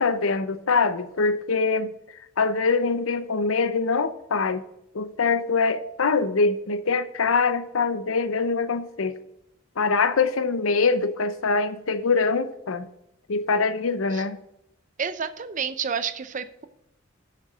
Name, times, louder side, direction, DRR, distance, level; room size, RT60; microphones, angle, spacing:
voice 1, 0.0-1.9 2.4-4.6 4.9-9.2 9.8-12.9 13.3-14.4, left 4 dB, 85° left, 0.7 m, -23 dB
voice 2, 15.0-16.7, right 6 dB, 40° right, 0.6 m, -30 dB
6.9 x 6.6 x 6.7 m
head